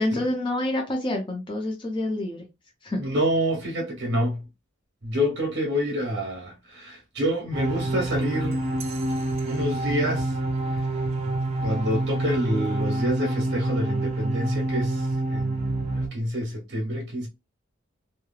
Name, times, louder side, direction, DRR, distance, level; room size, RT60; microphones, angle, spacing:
voice 1, 0.0-2.4 2.8-3.0, left 1 dB, 25° left, 0.6 m, -27 dB
voice 2, 2.9-4.4 5.0-8.6 9.4-10.3 11.6-17.3, equal, 55° right, 1.3 m, -27 dB
sound 1, 7.5-16.1, right 2 dB, 30° right, 0.6 m, -27 dB
3.2 x 2.2 x 2.3 m
head